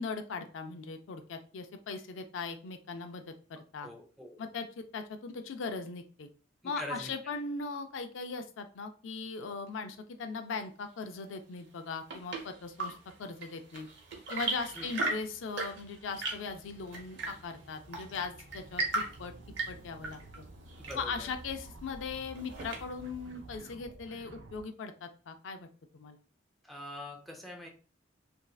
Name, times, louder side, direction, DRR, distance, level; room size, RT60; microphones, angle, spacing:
voice 1, 0.0-3.9 4.4-6.3 6.6-13.9 14.3-19.3 19.7-20.4 21.0-25.7 25.9-26.2, left 4 dB, 75° left, 7 dB, 0.4 m, -39 dB
voice 2, 3.8-4.4 6.6-7.1 14.8-14.9 20.9-21.3 26.6-27.7, left 1 dB, ahead, 0 dB, 0.6 m, -43 dB
Chirp tweet / Engine / Tap, 11.6-23.2, right 2 dB, 65° right, 0.9 m, -39 dB
sound 1, 12.1-24.6, right 2 dB, 80° right, 0.6 m, -53 dB
3.1 x 2.6 x 2.3 m, 0.38 s
head